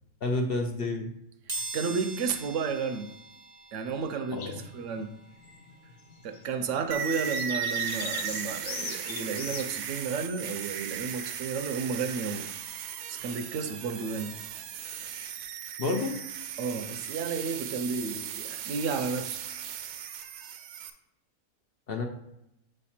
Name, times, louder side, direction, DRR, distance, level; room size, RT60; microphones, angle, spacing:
voice 1, 0.2-1.1 4.3-4.6 15.8-16.2 21.9-22.0, left 2 dB, 60° left, 3 dB, 0.6 m, -29 dB
sound 1, 1.5-12.2 12.6-12.7 13.9-14.0 14.3-16.3 16.7-19.3 19.7-19.9 20.2-20.3, right 3 dB, 25° right, 0.5 m, -46 dB
voice 2, 1.5-3.1 3.7-5.1 6.2-12.5 13.1-14.4 16.6-19.4, right 5 dB, 65° right, 8 dB, 0.8 m, -32 dB
sound 2, 4.4-10.2, left 6 dB, 80° left, 1.3 m, -41 dB
sound 3, 6.9-20.9, right 9 dB, 85° right, 1.1 m, -37 dB
7.8 x 3.2 x 4.2 m, 0.83 s
omnidirectional pair, 1.6 m